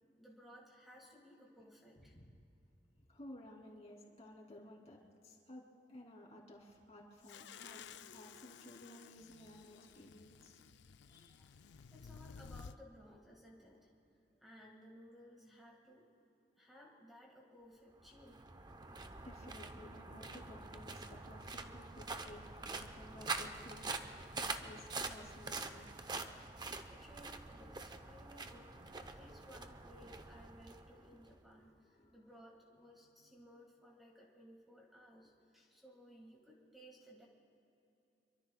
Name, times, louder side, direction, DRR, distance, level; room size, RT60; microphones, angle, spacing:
voice 1, 0.0-2.2 11.0-13.9 14.3-16.0 16.6-18.5 26.3-37.3, equal, ahead, -1 dB, 1.7 m, -60 dB
voice 2, 2.0-2.3 3.0-10.6 11.1-11.4 19.2-24.0 24.4-25.9 31.1-31.2 31.6-32.2, left 1 dB, 40° left, -2 dB, 2.9 m, -56 dB
sound 1, 7.2-12.8, left 6 dB, 70° left, 0.4 m, -54 dB
sound 2, 18.0-31.4, right 3 dB, 25° right, 0.7 m, -45 dB
26.0 x 24.0 x 2.3 m, 2.9 s
head